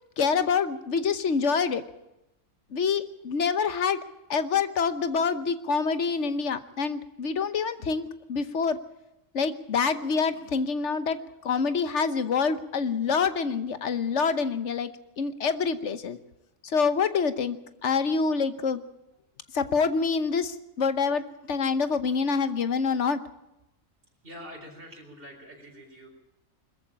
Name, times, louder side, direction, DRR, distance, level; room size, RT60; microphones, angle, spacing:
voice 1, 0.2-1.8 2.7-4.0 4.3-8.8 9.3-14.9 15.2-16.2 16.6-17.6 17.8-18.8 19.5-23.2, left 5 dB, 65° left, 12 dB, 1.3 m, -26 dB
voice 2, 24.2-26.1, equal, 45° right, 0 dB, 4.4 m, -45 dB
21.5 x 14.5 x 8.6 m, 0.90 s
omnidirectional pair, 1.4 m